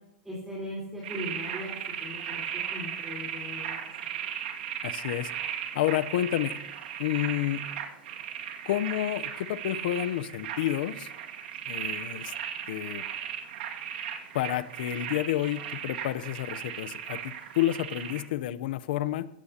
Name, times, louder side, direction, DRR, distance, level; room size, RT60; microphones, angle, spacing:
voice 1, 0.2-2.4 2.7-3.8, left 1 dB, 5° right, -5 dB, 3.9 m, -39 dB
sound 1, 1.0-18.2, right 9 dB, 80° right, 2.2 m, -37 dB
voice 2, 4.8-5.3 5.7-6.6 7.0-7.7 8.6-11.1 11.7-12.3 12.7-13.0 14.3-19.3, left 13 dB, 70° left, 15 dB, 0.8 m, -30 dB
22.5 x 16.5 x 2.9 m, 0.86 s
supercardioid pair, 155°, 5 cm